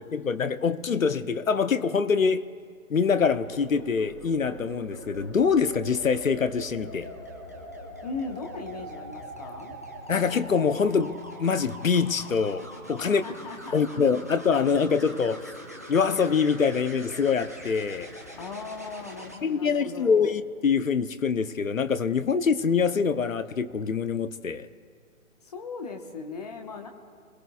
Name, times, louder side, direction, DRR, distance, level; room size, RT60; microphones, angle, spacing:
voice 1, 0.0-2.4 2.9-7.1 10.1-13.2 13.7-15.5 15.9-18.1 19.4-24.7, left 5 dB, 70° left, 0.9 m, -25 dB
sound 1, 3.3-19.4 21.3-21.6, right 1 dB, 15° right, 0.5 m, -43 dB
voice 2, 8.0-9.8 13.0-14.0 18.4-20.4 25.4-26.9, left 4 dB, 30° left, 1.2 m, -38 dB
25.0 x 19.0 x 2.4 m
figure-of-eight pair, 145°, 41 cm